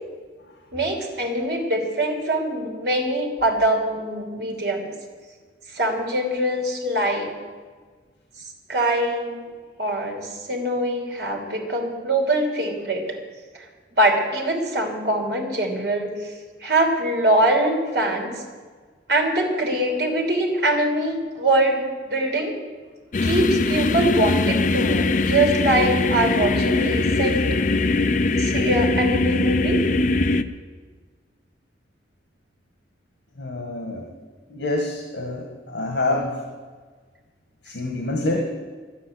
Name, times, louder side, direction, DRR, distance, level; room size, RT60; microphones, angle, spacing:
voice 1, 0.7-4.9 5.7-7.3 8.7-9.4 9.8-13.2 13.5-13.6 13.9-16.3 16.6-18.3 19.1-22.5 23.2-27.4 27.9-28.1 28.4-29.8, right 1 dB, 65° right, 1 dB, 3.0 m, -23 dB
sound 1, 23.1-30.4, left 3 dB, 45° left, 0.5 m, -21 dB
voice 2, 33.4-34.1 34.5-36.4 37.6-38.4, left 2 dB, 75° left, 1 dB, 1.8 m, -26 dB
12.0 x 9.9 x 8.0 m, 1.5 s
head